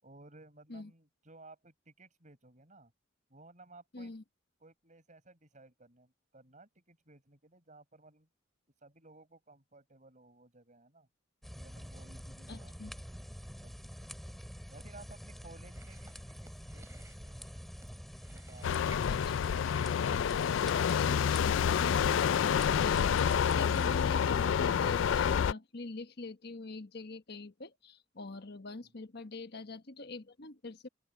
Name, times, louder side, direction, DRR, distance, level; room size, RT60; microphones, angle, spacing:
voice 1, 0.0-2.9 3.3-4.1 4.6-8.3 8.8-11.1 11.6-12.9 13.4-14.4 14.7-17.4 18.3-19.2, right 2 dB, 40° right, 6.5 m, -57 dB
voice 2, 3.9-4.2 12.5-12.9 19.1-19.3 21.0-30.9, left 2 dB, 60° left, 1.3 m, -44 dB
sound 1, 11.4-24.0, equal, ahead, 3.0 m, -47 dB
Chewing mastication, 15.7-21.7, right 2 dB, 15° right, 4.2 m, -57 dB
sound 2, 18.6-25.5, left 8 dB, 75° left, 0.3 m, -28 dB
open air
head